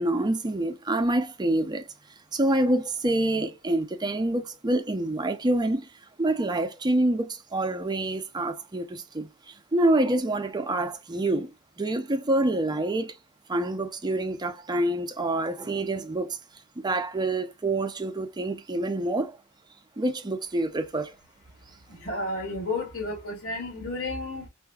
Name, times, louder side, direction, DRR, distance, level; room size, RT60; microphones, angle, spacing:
voice 1, 0.0-1.9 2.3-5.9 6.2-13.2 13.5-16.4 16.8-19.4 20.0-21.1, right 1 dB, 20° right, 0.5 m, -27 dB
voice 2, 22.0-24.5, left 2 dB, 85° left, 2.4 m, -32 dB
4.6 x 2.5 x 2.3 m
head